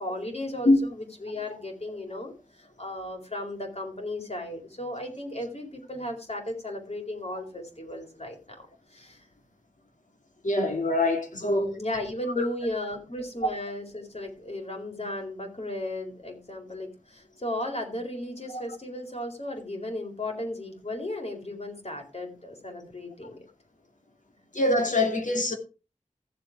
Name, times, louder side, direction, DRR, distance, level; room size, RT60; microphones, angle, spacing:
voice 1, 0.0-8.7 8.9-9.2 11.4-23.4, left 1 dB, 55° left, 4.5 m, -35 dB
voice 2, 10.4-11.7 12.4-12.5 24.5-25.5, left 2 dB, 90° left, 2.5 m, -23 dB
14.5 x 7.6 x 4.7 m
wide cardioid pair, 55°, 13 cm